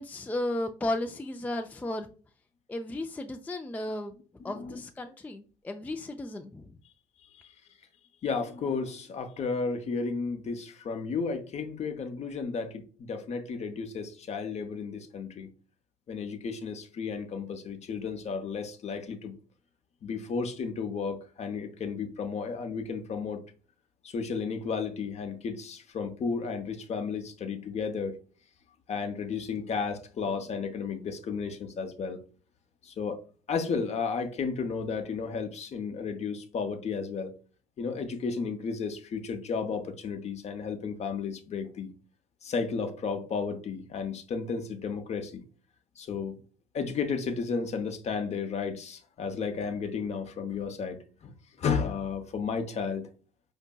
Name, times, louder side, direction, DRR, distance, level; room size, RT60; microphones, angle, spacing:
voice 1, 0.0-2.1 2.7-4.2 4.4-6.7, left 1 dB, 10° left, 0.4 m, -34 dB
voice 2, 4.4-4.8 8.2-15.5 16.1-19.3 20.0-23.4 24.0-28.2 28.9-32.2 32.8-33.2 33.5-37.3 37.8-41.9 42.4-45.4 46.0-46.4 46.7-51.3 51.6-53.1, left 5 dB, 40° left, 0.7 m, -33 dB
5.1 x 2.6 x 2.2 m
hypercardioid pair, 55°, 17 cm